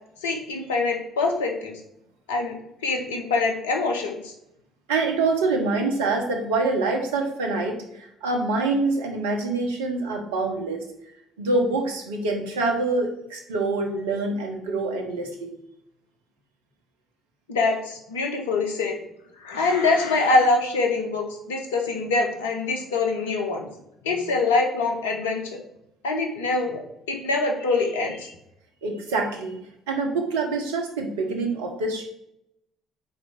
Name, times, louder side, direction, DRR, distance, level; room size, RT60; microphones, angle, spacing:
voice 1, 0.2-1.8 2.3-2.6 2.8-4.3 17.5-19.0 19.4-23.7 24.0-25.6 26.0-26.8 27.1-28.3, left 3 dB, 80° left, 3 dB, 1.1 m, -24 dB
voice 2, 4.9-10.8 11.4-15.5 28.8-29.6 29.9-32.0, right 3 dB, 80° right, 3 dB, 1.2 m, -25 dB
5.0 x 4.6 x 5.8 m, 0.80 s
hypercardioid pair, 55°, 0 cm